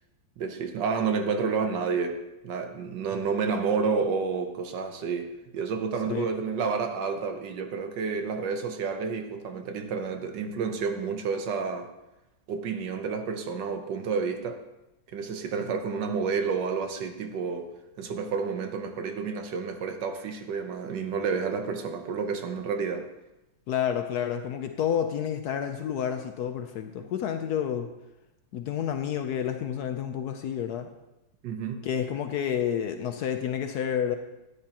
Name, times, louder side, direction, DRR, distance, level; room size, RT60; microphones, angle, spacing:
voice 1, 0.4-2.2 2.4-11.9 12.5-14.6 15.1-17.7 18.0-23.1 31.4-31.8, right 5 dB, 70° right, 6 dB, 1.5 m, -30 dB
voice 2, 23.7-27.9 28.5-30.9 31.8-34.2, left 9 dB, 70° left, 6 dB, 1.0 m, -29 dB
13.0 x 9.8 x 2.9 m, 0.97 s
omnidirectional pair, 2.0 m